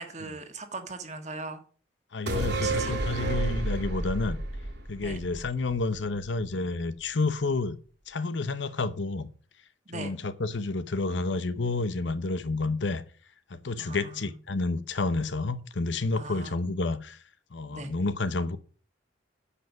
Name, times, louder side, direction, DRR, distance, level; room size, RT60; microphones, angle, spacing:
voice 1, 0.0-1.6 2.6-3.0 5.0-5.2 9.9-10.1 13.8-14.4 16.1-16.8 17.7-17.9, right 3 dB, 35° right, 1.5 m, -39 dB
voice 2, 2.1-4.4 4.9-7.8 8.1-9.3 9.9-13.0 13.5-17.2 17.5-18.6, left 3 dB, 70° left, 0.8 m, -30 dB
sound 1, 2.3-5.8 6.2-6.3, right 2 dB, 60° right, 2.0 m, -30 dB
9.7 x 5.5 x 5.9 m
head